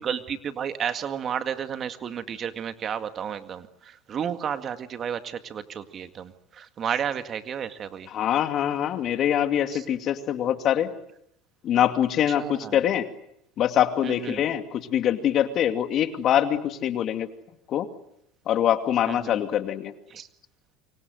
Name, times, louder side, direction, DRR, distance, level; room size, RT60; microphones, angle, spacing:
voice 1, 0.0-8.1 9.7-9.8 12.4-12.8 14.0-14.4 19.1-19.4 20.1-20.3, right 8 dB, 40° right, 9 dB, 2.0 m, -32 dB
voice 2, 8.0-10.9 11.6-13.1 13.6-17.3 17.7-17.9 18.5-19.9, left 10 dB, 50° left, 8 dB, 2.4 m, -24 dB
28.5 x 25.0 x 7.9 m, 0.76 s
supercardioid pair, 105°, 0 cm